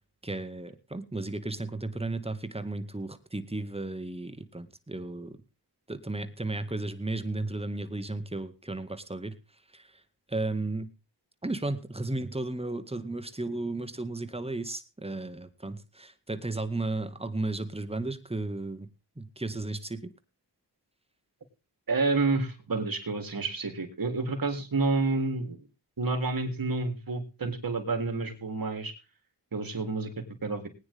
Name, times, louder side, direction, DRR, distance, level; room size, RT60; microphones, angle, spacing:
voice 1, 0.2-5.4 5.9-9.3 9.7-9.9 10.3-10.9 11.4-18.9 19.2-20.1, right 2 dB, 15° right, 9 dB, 1.9 m, -34 dB
voice 2, 21.9-25.6 26.0-28.9 29.5-30.7, right 3 dB, 55° right, 5 dB, 3.6 m, -29 dB
19.5 x 9.7 x 3.6 m, 0.32 s
cardioid pair, 45°, 41 cm